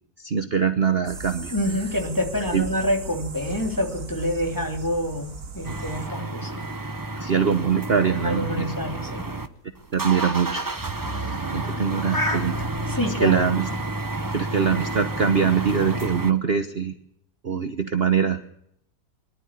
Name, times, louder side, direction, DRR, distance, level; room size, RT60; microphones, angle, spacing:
voice 1, 0.2-1.5 2.5-2.7 7.2-8.7 9.9-10.7 11.1-12.7 13.0-13.7 14.3-16.9 17.4-18.4, right 6 dB, 40° right, 8 dB, 1.2 m, -23 dB
sound 1, 1.1-6.1, right 2 dB, 70° right, 2.8 m, -38 dB
voice 2, 1.5-5.3 5.5-6.6 8.2-9.3 12.9-13.4, left 1 dB, 10° left, 3 dB, 3.2 m, -27 dB
sound 2, 5.6-9.5 9.8-16.3, right 2 dB, 15° right, 0.8 m, -30 dB
sound 3, 7.5-12.8, left 1 dB, 60° left, 4.4 m, -35 dB
23.0 x 12.5 x 9.8 m, 0.72 s
omnidirectional pair, 1.7 m